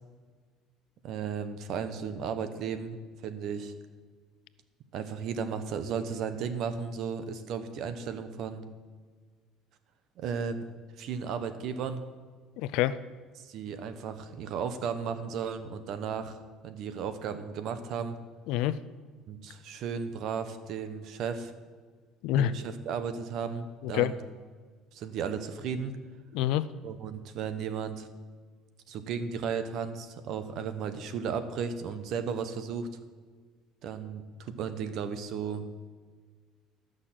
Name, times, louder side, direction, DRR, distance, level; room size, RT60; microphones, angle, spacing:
voice 1, 1.0-3.0 3.2-3.7 4.9-8.6 10.2-12.0 13.4-16.4 16.6-18.2 19.3-21.5 22.4-24.2 24.9-26.0 26.8-28.1 28.9-32.9 33.8-35.7, right 6 dB, 55° right, 10 dB, 1.0 m, -35 dB
voice 2, 12.6-13.0 18.5-18.8 22.2-22.5 23.8-24.1 26.3-26.7, left 13 dB, 70° left, 16 dB, 0.4 m, -26 dB
12.0 x 6.5 x 7.4 m, 1.5 s
cardioid pair, 155°, 0 cm